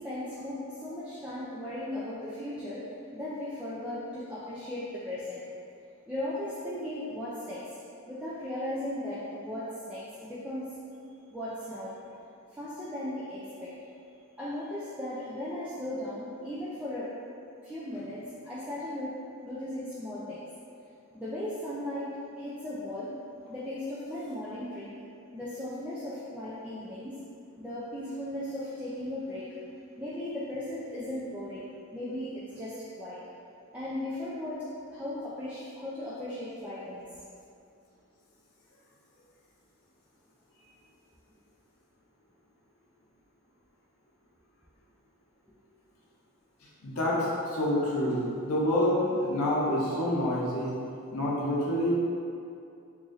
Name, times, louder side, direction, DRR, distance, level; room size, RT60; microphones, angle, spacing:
voice 1, 0.0-2.8 3.1-5.4 6.1-7.6 8.0-10.7 11.3-11.9 12.5-13.7 14.4-17.1 17.6-19.1 19.4-20.4 21.1-23.1 23.5-24.9 25.3-27.2 27.6-29.5 30.0-33.2 33.7-34.6 34.9-37.0 40.6-40.7, left 1 dB, 5° right, -10 dB, 0.3 m, -37 dB
voice 2, 46.8-50.7 51.1-52.0, left 1 dB, 90° left, -5 dB, 0.7 m, -27 dB
3.0 x 2.5 x 3.8 m, 2.6 s
head